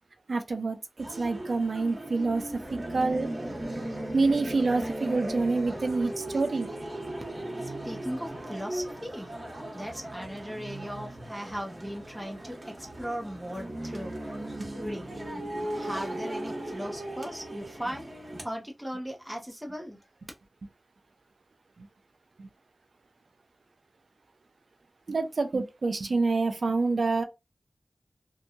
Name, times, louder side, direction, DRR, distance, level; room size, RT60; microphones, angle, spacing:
voice 1, 0.3-0.8 1.1-3.3 4.1-6.7 21.8-21.9 22.4-22.5 25.1-27.2, right 3 dB, 75° right, 0.5 m, -27 dB
sound 1, 1.0-18.4, right 1 dB, 50° right, 1.1 m, -37 dB
voice 2, 7.6-14.2 14.8-15.1 15.7-18.1 18.4-20.0, equal, 5° right, 0.7 m, -38 dB
2.7 x 2.2 x 2.6 m
wide cardioid pair, 50°, 0 cm